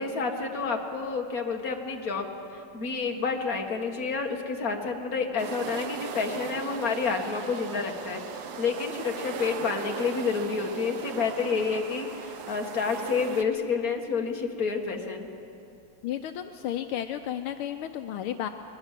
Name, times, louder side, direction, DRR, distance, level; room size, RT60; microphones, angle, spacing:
voice 1, 0.0-2.3 2.5-15.3, left 5 dB, 40° left, 2 dB, 2.1 m, -29 dB
sound 1, 5.4-13.4, right 7 dB, 85° right, 2.0 m, -38 dB
voice 2, 16.0-18.5, left 11 dB, 80° left, 7 dB, 1.6 m, -33 dB
22.5 x 21.0 x 7.5 m, 2.6 s
omnidirectional pair, 2.4 m